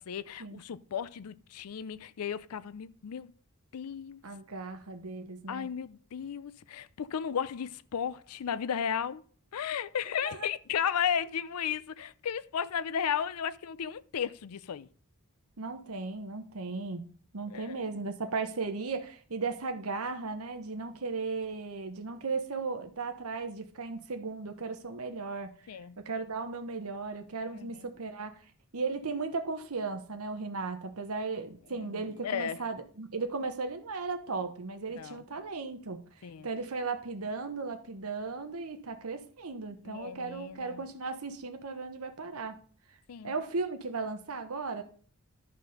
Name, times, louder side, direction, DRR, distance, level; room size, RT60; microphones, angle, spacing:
voice 1, 0.0-3.3 3.7-4.2 5.5-9.2 9.5-14.9 17.5-17.7 25.7-26.0 27.6-27.9 31.7-32.6 35.0-35.2 36.2-36.5 39.8-40.8 43.1-43.3, left 8 dB, 85° left, 0.5 m, -34 dB
voice 2, 4.2-5.7 10.2-10.5 15.6-17.0 17.3-25.5 26.0-28.4 28.7-36.0 36.4-42.6 43.2-44.8, right 4 dB, 75° right, 1.1 m, -36 dB
11.5 x 4.2 x 6.5 m
head